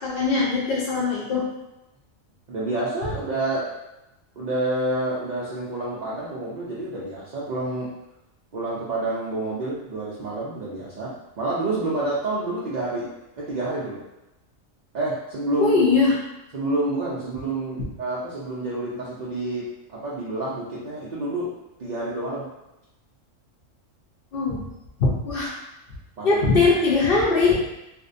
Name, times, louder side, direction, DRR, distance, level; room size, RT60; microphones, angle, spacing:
voice 1, 0.0-1.5 15.6-16.1 24.3-24.6 25.0-25.5 26.2-27.6, left 4 dB, 55° left, -6 dB, 0.7 m, -20 dB
voice 2, 2.5-3.7 4.4-7.9 8.5-13.1 13.4-14.0 14.9-15.8 16.5-21.5 21.8-22.5 26.2-26.4, right 2 dB, 75° right, -7 dB, 0.4 m, -28 dB
2.5 x 2.1 x 2.5 m, 0.94 s
omnidirectional pair, 1.3 m